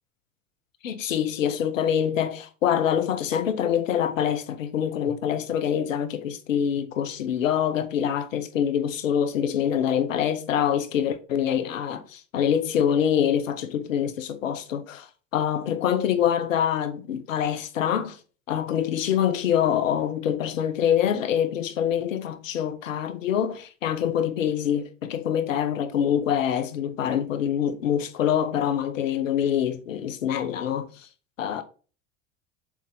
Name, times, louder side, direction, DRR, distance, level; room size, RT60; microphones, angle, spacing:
voice 1, 0.8-15.1 15.3-18.2 18.5-31.1 31.4-31.6, left 9 dB, 90° left, 0.9 m, -25 dB
7.4 x 4.3 x 3.7 m
hypercardioid pair, 80°, 38 cm